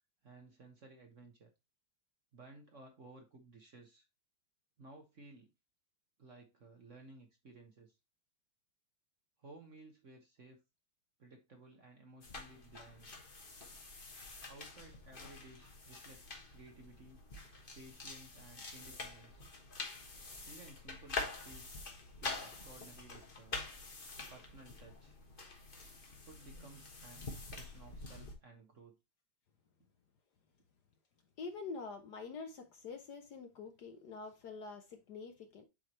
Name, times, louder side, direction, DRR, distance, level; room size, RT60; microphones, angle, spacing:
voice 1, 0.2-1.5 2.3-4.0 4.8-5.5 6.2-8.0 9.4-10.6 11.2-13.1 14.5-17.2 17.7-19.4 20.4-21.8 22.2-23.6 24.3-25.2 26.2-29.0, right 2 dB, 45° right, 1.2 m, -57 dB
sound 1, 12.2-28.3, left 3 dB, 30° left, 1.2 m, -46 dB
voice 2, 31.4-35.6, left 4 dB, 65° left, 1.2 m, -46 dB
7.7 x 4.6 x 3.1 m
omnidirectional pair, 2.3 m